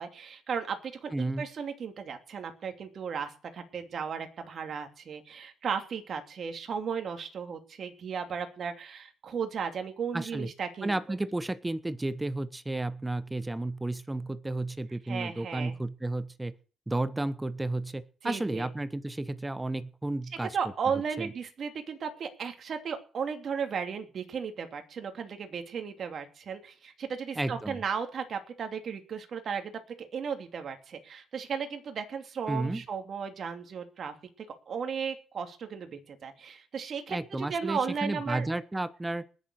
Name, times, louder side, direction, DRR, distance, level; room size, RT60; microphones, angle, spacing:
voice 1, 0.0-11.0 15.1-15.7 18.2-18.7 20.4-34.1 34.7-38.5, right 6 dB, 55° right, 6 dB, 2.9 m, -35 dB
voice 2, 1.1-1.4 10.1-10.5 10.8-16.5 16.9-20.6 21.2-21.3 27.4-27.8 32.5-32.8 37.1-39.2, right 2 dB, 15° right, 15 dB, 1.0 m, -32 dB
20.0 x 7.4 x 6.5 m, 0.40 s
cardioid pair, 90°, 0 cm